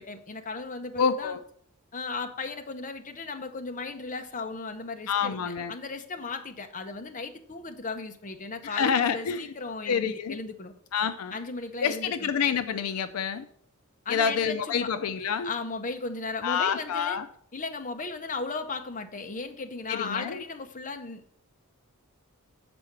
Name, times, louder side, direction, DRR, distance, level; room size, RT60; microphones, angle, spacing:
voice 1, 0.0-1.4 1.9-10.7 11.3-12.3 14.0-14.9 15.4-17.2 17.5-21.2, left 3 dB, 35° left, 6 dB, 0.7 m, -36 dB
voice 2, 1.0-1.4 5.1-5.7 8.6-9.5 9.9-10.4 10.9-11.3 11.8-13.5 14.1-15.5 16.4-17.3 19.9-20.4, left 7 dB, 75° left, 11 dB, 0.4 m, -27 dB
6.9 x 4.8 x 6.6 m, 0.65 s
head